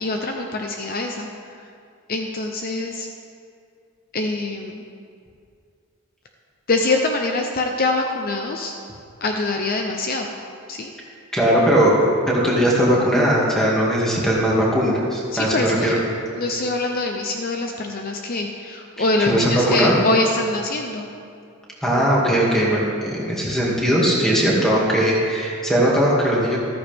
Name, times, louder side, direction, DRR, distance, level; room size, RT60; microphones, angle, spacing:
voice 1, 0.0-1.6 2.1-3.1 4.1-4.8 6.7-8.7 9.2-10.3 10.7-10.9 15.3-16.0 16.4-21.1, left 2 dB, 45° left, 3 dB, 0.7 m, -24 dB
voice 2, 11.3-15.9 19.3-20.0 21.8-26.6, equal, ahead, -5 dB, 2.3 m, -19 dB
14.0 x 13.5 x 3.6 m, 2.3 s
head